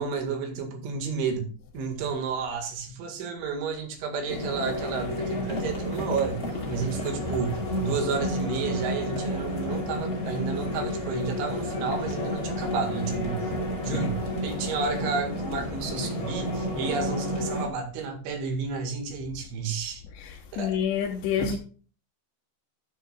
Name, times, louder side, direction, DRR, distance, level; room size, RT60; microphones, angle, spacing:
voice 1, 0.0-1.5 1.7-6.4 6.7-13.5 13.8-20.0 20.5-20.8 21.4-21.6, right 5 dB, 80° right, 4.3 m, -31 dB
sound 1, 4.3-17.7, left 1 dB, 25° left, 2.1 m, -31 dB
voice 2, 20.2-21.6, left 9 dB, 80° left, 3.2 m, -28 dB
13.0 x 9.4 x 2.4 m
omnidirectional pair, 5.3 m